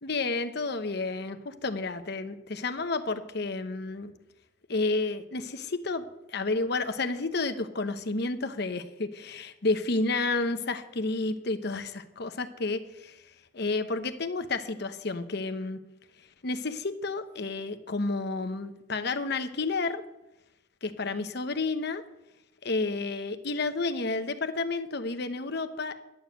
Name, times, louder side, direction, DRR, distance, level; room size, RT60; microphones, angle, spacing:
voice 1, 0.0-4.1 4.7-13.2 13.5-15.8 16.4-20.0 20.8-22.0 22.6-25.9, left 3 dB, 55° left, 9 dB, 0.9 m, -31 dB
11.0 x 7.1 x 7.9 m, 0.91 s
head